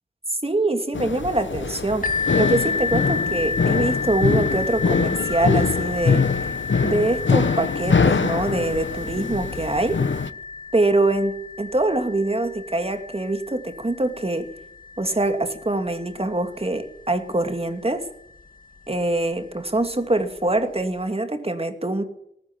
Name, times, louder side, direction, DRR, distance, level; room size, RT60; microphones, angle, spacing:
voice 1, 0.4-6.2 6.8-10.0 10.7-14.5 15.0-18.1 18.9-22.0, right 2 dB, 30° right, 7 dB, 2.4 m, -24 dB
sound 1, 0.9-10.3, left 5 dB, 75° left, 0.9 m, -23 dB
sound 2, 2.0-17.6 18.3-18.4 19.0-19.1, left 4 dB, 45° left, 2.2 m, -31 dB
20.0 x 14.5 x 9.1 m, 0.76 s
wide cardioid pair, 80°, 19 cm